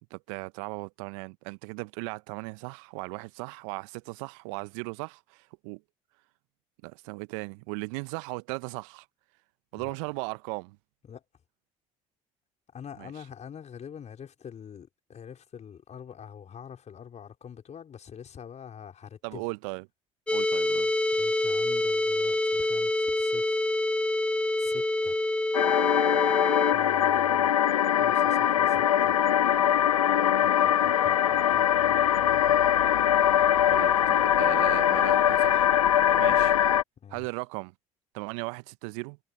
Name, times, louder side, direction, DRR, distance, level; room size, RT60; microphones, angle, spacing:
voice 1, 0.1-5.8 6.8-9.1 9.7-10.8 13.0-13.1 19.2-19.8 20.3-20.9 33.7-35.7 36.2-36.6 37.1-37.7 38.1-39.2, right 30 dB, 70° right, 1.0 m, -37 dB
voice 2, 12.7-19.4 21.1-23.8 24.6-25.2 26.6-27.5 27.8-29.1 30.4-32.6 37.0-37.3, left 8 dB, 40° left, 4.9 m, -46 dB
sound 1, 20.3-26.7, left 1 dB, 5° left, 0.6 m, -26 dB
sound 2, 25.5-36.8, left 10 dB, 85° left, 0.6 m, -22 dB
figure-of-eight pair, 55°, 17 cm